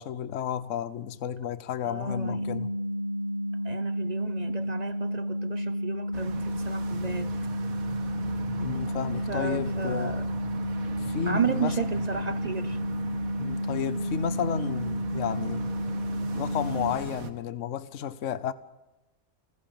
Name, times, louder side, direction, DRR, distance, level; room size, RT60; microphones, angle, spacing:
voice 1, 0.0-2.7 8.6-10.2 11.0-11.7 13.4-15.7 16.3-18.5, left 9 dB, 55° left, 1.2 m, -32 dB
voice 2, 1.8-2.5 3.6-7.3 9.3-10.3 11.3-12.8, right 6 dB, 40° right, 0.6 m, -33 dB
sound 1, 2.1-16.9, equal, 40° left, 2.6 m, -31 dB
sound 2, 6.1-17.3, right 6 dB, 65° right, 1.8 m, -40 dB
28.0 x 15.0 x 7.2 m
omnidirectional pair, 1.6 m